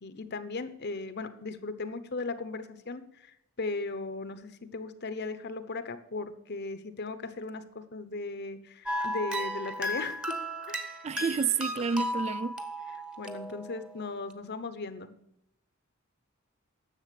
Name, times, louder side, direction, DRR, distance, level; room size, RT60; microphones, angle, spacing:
voice 1, 0.0-10.4 10.7-10.8 13.2-15.1, left 3 dB, 50° left, 0.9 m, -37 dB
sound 1, 8.9-14.0, equal, 5° right, 0.9 m, -35 dB
voice 2, 11.0-12.6, right 5 dB, 30° right, 0.3 m, -29 dB
10.5 x 7.2 x 6.8 m
head